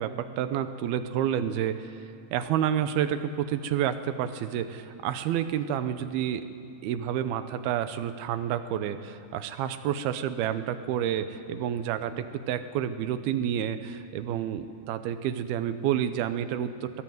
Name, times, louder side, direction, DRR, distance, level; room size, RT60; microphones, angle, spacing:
voice 1, 0.0-1.9 2.3-6.5 6.8-16.9, right 10 dB, 80° right, 10 dB, 2.6 m, -29 dB
22.5 x 17.5 x 7.8 m, 2.4 s
omnidirectional pair, 4.8 m